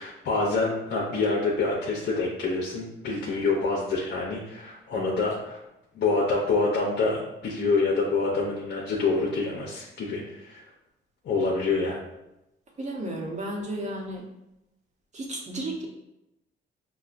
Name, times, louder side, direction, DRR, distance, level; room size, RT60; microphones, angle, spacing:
voice 1, 0.0-5.6 5.9-10.6 11.2-12.0, left 3 dB, 60° left, -2 dB, 0.7 m, -26 dB
voice 2, 12.8-14.2 15.1-15.9, right 1 dB, 35° right, 0 dB, 0.9 m, -33 dB
5.6 x 2.2 x 2.5 m, 0.91 s
cardioid pair, 90°, 20 cm